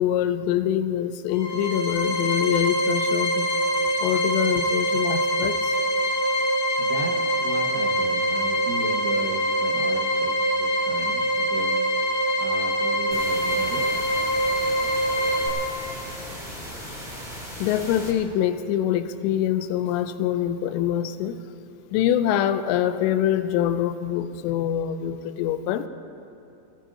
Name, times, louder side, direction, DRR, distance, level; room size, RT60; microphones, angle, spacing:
voice 1, 0.0-3.5 4.0-5.6 17.6-21.4 21.9-25.9, left 10 dB, 85° left, 10 dB, 2.9 m, -24 dB
sound 1, 1.3-15.5, equal, 45° left, 2.8 m, -24 dB
voice 2, 6.8-10.3 10.6-11.8 12.4-13.9, right 3 dB, 85° right, -1 dB, 4.2 m, -36 dB
sound 2, 13.1-18.1, equal, ahead, 2.1 m, -37 dB
27.5 x 17.5 x 2.9 m, 2.6 s
omnidirectional pair, 5.1 m